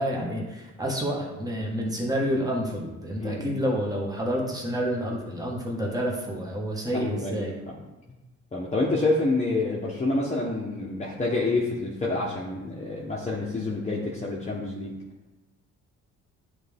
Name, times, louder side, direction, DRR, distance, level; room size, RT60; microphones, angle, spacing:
voice 1, 0.0-7.5, equal, 10° right, -2 dB, 1.5 m, -29 dB
voice 2, 3.2-3.6 6.9-7.8 8.5-14.9, left 2 dB, 20° left, -4 dB, 1.1 m, -28 dB
9.2 x 3.5 x 3.5 m, 1.1 s
cardioid pair, 90°, 30 cm